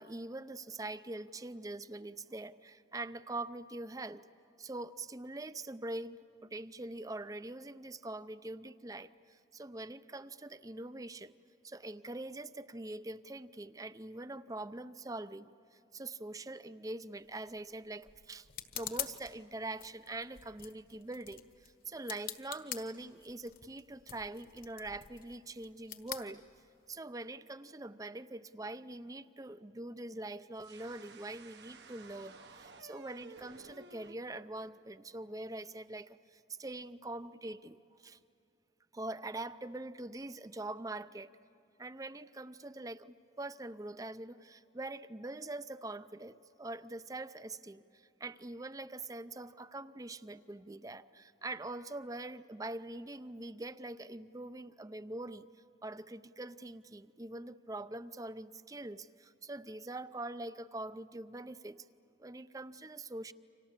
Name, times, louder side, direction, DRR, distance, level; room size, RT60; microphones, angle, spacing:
voice 1, 0.0-4.3 4.6-11.3 11.6-15.5 15.9-18.5 18.7-26.4 26.9-38.2 38.9-41.3 41.8-55.5 55.8-61.8 62.2-63.3, right 2 dB, 20° right, 14 dB, 0.6 m, -43 dB
sound 1, 17.2-27.0, left 9 dB, 50° left, 1.4 m, -47 dB
sound 2, 30.6-34.1, right 3 dB, 70° right, 1.3 m, -54 dB
30.0 x 26.0 x 7.4 m, 2.6 s
head